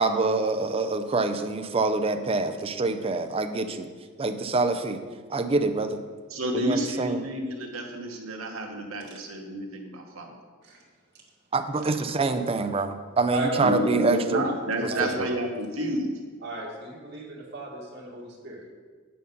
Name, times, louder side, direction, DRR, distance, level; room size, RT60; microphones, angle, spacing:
voice 1, 0.0-3.9 4.2-5.0 5.3-6.0 6.5-7.2 11.5-14.5 14.8-15.3, right 3 dB, 30° right, 8 dB, 0.5 m, -26 dB
voice 2, 6.3-10.3 13.6-16.1, right 1 dB, 90° right, 2 dB, 1.2 m, -30 dB
voice 3, 13.3-14.1 14.9-15.1 16.4-18.6, right 2 dB, 55° right, -3 dB, 2.0 m, -35 dB
8.6 x 5.5 x 5.4 m, 1.5 s
head